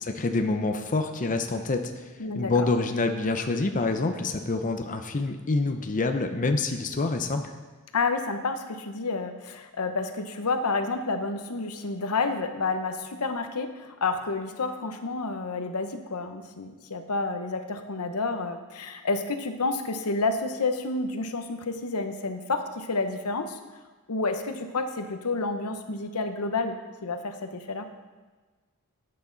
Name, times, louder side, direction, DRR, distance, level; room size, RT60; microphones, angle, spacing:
voice 1, 0.0-1.9 2.3-7.5, left 3 dB, 35° left, 6 dB, 0.6 m, -27 dB
voice 2, 2.2-2.7 7.9-23.6 24.1-26.8 27.0-27.9, left 3 dB, 85° left, 7 dB, 0.9 m, -30 dB
12.5 x 8.6 x 3.9 m, 1.3 s
head